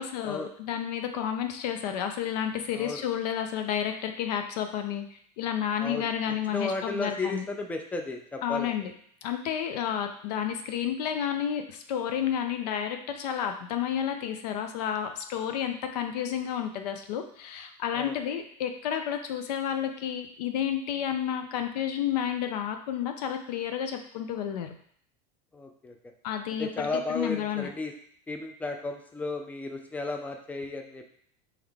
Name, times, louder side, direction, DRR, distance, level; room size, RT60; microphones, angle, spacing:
voice 1, 0.0-7.5 8.4-8.9 9.2-24.7 26.2-27.7, left 9 dB, 85° left, 6 dB, 0.6 m, -31 dB
voice 2, 5.8-8.7 17.9-18.1 25.5-26.0 26.6-27.9 28.3-31.1, left 3 dB, 5° left, 4 dB, 0.4 m, -34 dB
3.7 x 3.0 x 3.5 m, 0.62 s
supercardioid pair, 120°, 20 cm